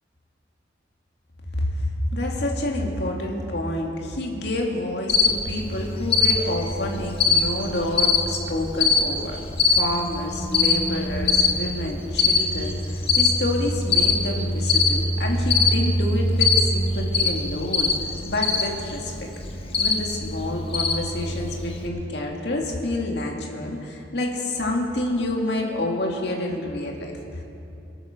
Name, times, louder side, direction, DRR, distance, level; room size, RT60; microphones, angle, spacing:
voice 1, 1.6-9.4 9.6-18.0 18.3-19.3 19.8-27.4, left 1 dB, 65° left, 0 dB, 2.2 m, -28 dB
Cricket, 5.1-21.9, left 4 dB, 30° left, 1.2 m, -23 dB
22.5 x 9.0 x 6.6 m, 2.8 s
head